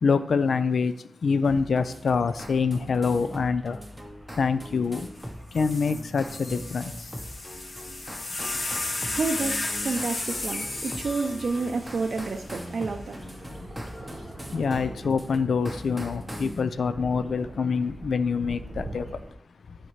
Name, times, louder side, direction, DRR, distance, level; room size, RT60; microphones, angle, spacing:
voice 1, 0.0-0.9 1.2-3.8 4.4-5.0 5.5-6.8 14.5-19.0, left 5 dB, 80° left, 13 dB, 0.3 m, -25 dB
sound 1, 1.4-16.6, equal, 5° right, 1.0 m, -41 dB
sound 2, 1.6-19.3, right 1 dB, 30° right, 1.3 m, -47 dB
sound 3, 5.2-5.3 5.5-12.9 13.8-14.3, left 2 dB, 45° left, 0.9 m, -34 dB
voice 2, 8.4-14.8, right 4 dB, 65° right, 4 dB, 0.5 m, -31 dB
9.6 x 4.4 x 3.2 m, 0.73 s
wide cardioid pair, 80°, 0 cm